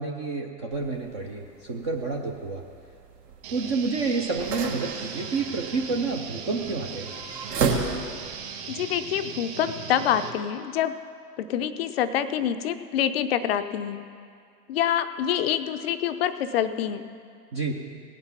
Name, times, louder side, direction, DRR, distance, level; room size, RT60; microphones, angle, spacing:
voice 1, 0.0-2.6 3.5-7.1 17.5-17.7, right 4 dB, 20° right, 1 dB, 0.3 m, -29 dB
sound 1, 0.7-8.4, right 4 dB, 70° right, 1.7 m, -34 dB
sound 2, 3.4-10.3, right 6 dB, 45° right, 2.3 m, -38 dB
voice 2, 8.7-10.9 11.4-14.0 14.7-17.0, left 10 dB, 40° left, 10 dB, 0.4 m, -26 dB
17.5 x 6.0 x 5.7 m, 2.2 s
hypercardioid pair, 110°, 49 cm